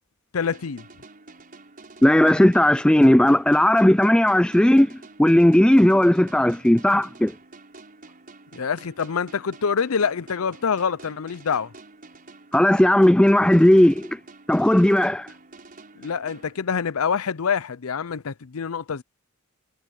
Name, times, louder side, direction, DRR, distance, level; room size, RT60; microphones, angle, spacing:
voice 1, 0.3-0.8 8.5-11.7 16.0-19.0, left 6 dB, 70° left, 0.6 m, -26 dB
sound 1, 0.5-17.1, right 3 dB, 40° right, 5.8 m, -48 dB
voice 2, 2.0-7.3 12.5-14.2 14.5-15.3, left 1 dB, 5° left, 0.3 m, -16 dB
head